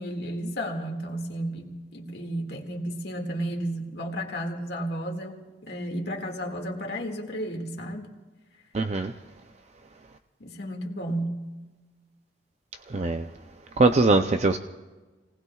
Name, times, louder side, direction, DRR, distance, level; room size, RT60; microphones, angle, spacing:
voice 1, 0.0-8.1 10.4-11.4, right 1 dB, 70° left, 2 dB, 2.0 m, -33 dB
voice 2, 8.7-9.1 12.9-13.2 13.8-14.6, right 3 dB, 40° right, 7 dB, 0.5 m, -21 dB
29.5 x 19.0 x 2.4 m, 1.2 s
head